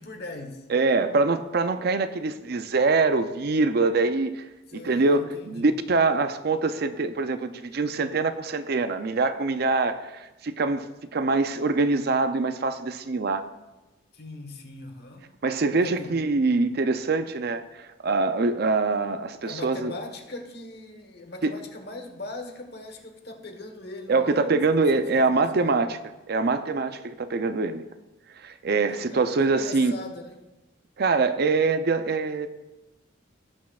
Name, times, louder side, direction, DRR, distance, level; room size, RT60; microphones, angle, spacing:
voice 1, 0.0-0.7 4.7-5.7 14.1-15.2 15.7-16.1 19.4-25.8 29.1-30.5, left 2 dB, 55° left, 5 dB, 1.2 m, -40 dB
voice 2, 0.7-4.3 4.7-10.9 11.1-13.5 15.4-19.9 21.4-21.5 24.1-26.0 26.3-27.8 28.4-29.9 31.0-32.5, right 3 dB, 55° right, 10 dB, 0.5 m, -24 dB
18.5 x 6.3 x 2.4 m, 1.1 s
head